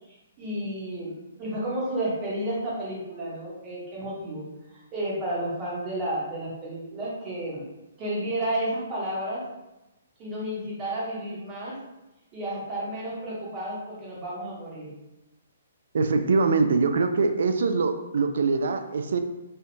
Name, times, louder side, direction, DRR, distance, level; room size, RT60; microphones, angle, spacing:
voice 1, 0.4-4.4 4.9-7.6 8.0-9.4 10.2-11.7 12.3-14.9, right 1 dB, 15° right, -7 dB, 1.0 m, -31 dB
voice 2, 15.9-19.2, right 4 dB, 65° right, 8 dB, 0.3 m, -23 dB
4.2 x 2.4 x 2.7 m, 0.97 s
hypercardioid pair, 170°, 0 cm